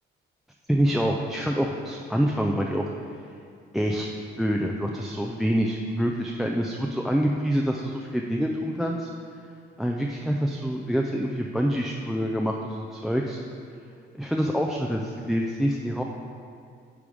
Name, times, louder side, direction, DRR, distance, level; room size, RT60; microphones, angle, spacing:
voice 1, 0.7-2.8 3.7-4.1 4.4-9.1 9.8-13.4 14.1-16.0, equal, ahead, 1 dB, 0.4 m, -26 dB
8.7 x 3.5 x 4.9 m, 2.3 s
cardioid pair, 90°, 20 cm